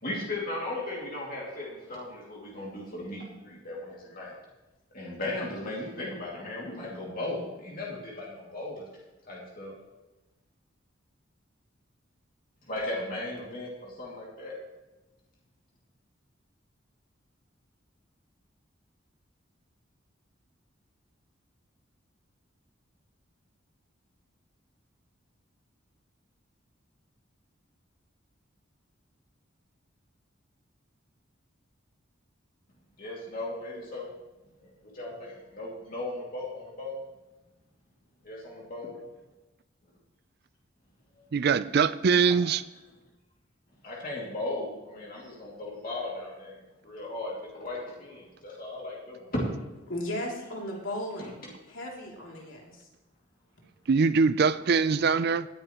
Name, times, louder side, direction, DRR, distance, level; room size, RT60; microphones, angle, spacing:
voice 1, 0.0-4.3 4.9-8.9 9.3-9.7 12.7-14.5 33.0-34.1 34.6-37.0 38.2-38.9 42.2-42.3 43.8-46.6 46.8-49.4 51.2-51.5, left 2 dB, 45° left, 2.4 m, -37 dB
voice 2, 41.3-42.6 53.9-55.5, right 5 dB, 50° right, 0.4 m, -23 dB
voice 3, 49.9-52.7, left 1 dB, 80° left, 2.9 m, -36 dB
18.0 x 10.0 x 3.0 m
head